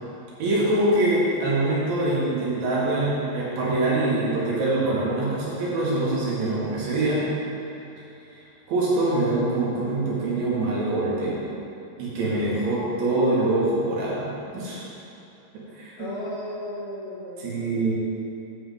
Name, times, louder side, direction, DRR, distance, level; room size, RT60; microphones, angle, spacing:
voice 1, 0.4-7.2 8.7-11.4 12.0-14.3 14.5-14.8 15.7-16.1 17.4-17.9, right 2 dB, 70° right, -8 dB, 4.2 m, -24 dB
voice 2, 16.0-17.9, left 1 dB, 65° left, -9 dB, 2.5 m, -35 dB
9.9 x 4.9 x 7.5 m, 2.8 s
omnidirectional pair, 5.8 m